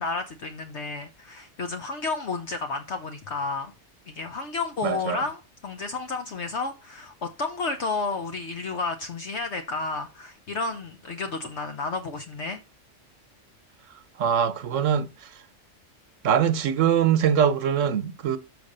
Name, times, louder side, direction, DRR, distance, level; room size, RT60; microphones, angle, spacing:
voice 1, 0.0-3.7 4.1-12.6, left 3 dB, 65° left, 1.2 m, -31 dB
voice 2, 4.8-5.2 14.2-15.1 16.2-18.4, right 8 dB, 80° right, 1.2 m, -22 dB
6.8 x 5.2 x 6.6 m
omnidirectional pair, 1.3 m